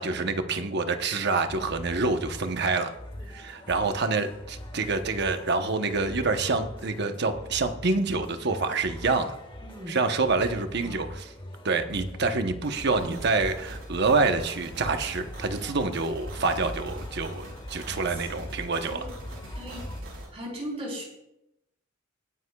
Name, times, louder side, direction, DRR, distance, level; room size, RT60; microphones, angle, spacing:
voice 1, 0.0-2.9 3.3-9.4 9.9-11.3 11.6-19.1, right 3 dB, 55° right, 7 dB, 0.9 m, -27 dB
sound 1, 1.0-20.0, left 1 dB, 25° left, 1.6 m, -43 dB
voice 2, 9.6-10.0 10.8-11.0 12.9-13.1 18.1-18.3 18.9-19.1 19.5-19.8 20.3-21.0, equal, 30° right, -3 dB, 4.0 m, -38 dB
sound 2, 12.8-20.3, equal, 80° right, 5.0 m, -41 dB
20.0 x 9.7 x 2.3 m, 0.86 s
head